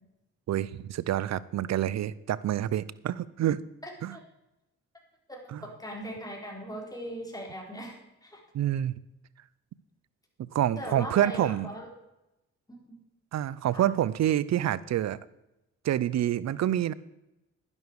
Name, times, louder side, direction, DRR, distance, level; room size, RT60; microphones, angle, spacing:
voice 1, 0.5-3.6 4.0-4.2 5.5-5.6 8.5-9.0 10.4-11.7 13.3-15.2 15.8-16.9, right 11 dB, 60° right, 19 dB, 0.7 m, -27 dB
voice 2, 3.8-4.2 5.3-8.0 8.2-8.4 10.8-11.9 12.7-13.0 13.7-13.9, equal, 10° left, 0 dB, 4.5 m, -40 dB
11.5 x 11.0 x 4.8 m, 0.93 s
cardioid pair, 70°, 30 cm